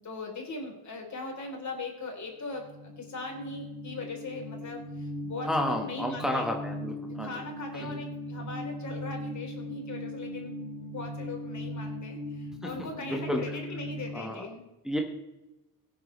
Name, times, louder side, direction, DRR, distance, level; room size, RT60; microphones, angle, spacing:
voice 1, 0.0-6.5 7.0-14.7, left 3 dB, 50° left, 1 dB, 4.1 m, -40 dB
sound 1, 2.5-14.2, left 1 dB, 25° right, 3.3 m, -39 dB
voice 2, 5.4-7.4 7.7-8.0 13.1-13.4 14.1-14.4 14.8-15.0, left 1 dB, ahead, 1 dB, 1.7 m, -31 dB
17.0 x 9.7 x 3.4 m, 1.0 s
cardioid pair, 70°, 37 cm